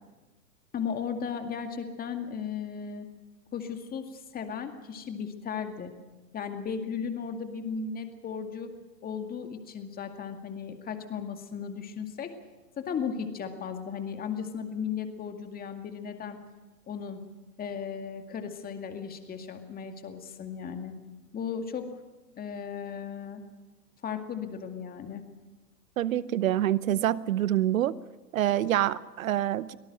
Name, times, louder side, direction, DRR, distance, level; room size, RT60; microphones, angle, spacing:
voice 1, 0.7-3.1 3.5-5.9 6.3-8.7 9.0-12.3 12.8-16.4 16.9-17.2 17.6-20.9 21.3-21.9 22.4-23.4 24.0-25.2, left 6 dB, 20° left, 6 dB, 2.1 m, -36 dB
voice 2, 26.0-27.9 28.3-29.8, right 12 dB, 55° right, 19 dB, 0.9 m, -26 dB
24.0 x 18.5 x 6.4 m, 1.2 s
figure-of-eight pair, 110°, 49 cm